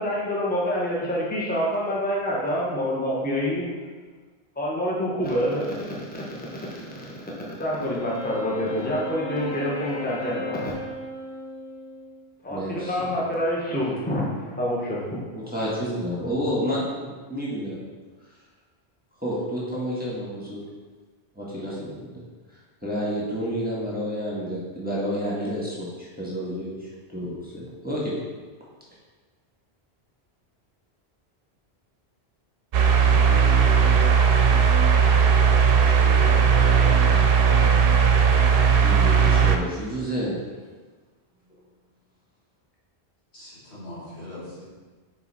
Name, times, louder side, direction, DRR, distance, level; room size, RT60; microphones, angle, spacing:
voice 1, 0.0-3.6 4.6-6.2 6.5-10.7 12.4-15.4, equal, 10° left, -5 dB, 1.0 m, -27 dB
Wind instrument woodwind instrument, 7.8-12.3, left 1 dB, 45° left, 0.7 m, -35 dB
voice 2, 12.5-13.2 15.3-17.8 19.2-20.6 21.3-22.2 22.8-28.1 38.8-40.4, equal, 10° right, -7 dB, 1.5 m, -30 dB
sound 1, 32.7-39.6, right 6 dB, 65° right, 0.7 m, -17 dB
voice 3, 43.3-44.6, left 1 dB, 80° left, -8 dB, 2.3 m, -40 dB
5.5 x 5.0 x 4.2 m, 1.4 s
omnidirectional pair, 1.1 m